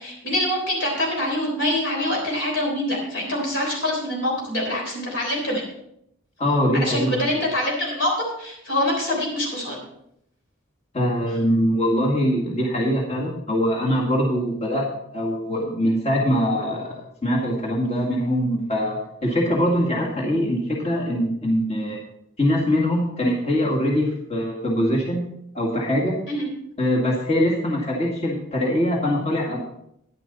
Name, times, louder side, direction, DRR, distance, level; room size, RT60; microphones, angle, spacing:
voice 1, 0.0-5.7 6.7-9.8 26.3-26.5, left 1 dB, 65° left, -2 dB, 3.7 m, -25 dB
voice 2, 6.4-7.2 10.9-14.9 15.1-22.0 22.4-25.2 25.5-26.2 26.8-29.6, equal, 30° left, -3 dB, 1.9 m, -23 dB
10.5 x 10.5 x 4.1 m, 0.75 s
head